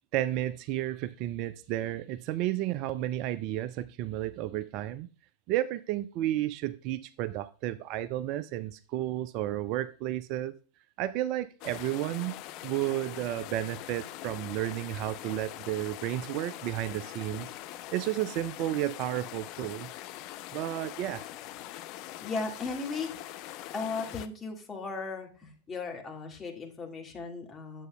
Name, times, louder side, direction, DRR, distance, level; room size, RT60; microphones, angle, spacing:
voice 1, 0.1-5.1 5.5-10.5 11.0-12.4 12.6-17.5 17.9-19.9 20.5-21.3, right 14 dB, 40° right, 0.3 m, -32 dB
sound 1, 11.6-24.3, left 14 dB, 40° left, 0.5 m, -43 dB
voice 2, 22.2-23.1 23.7-27.9, left 4 dB, 20° left, 1.8 m, -36 dB
9.0 x 7.7 x 2.2 m
figure-of-eight pair, 90°, 0 cm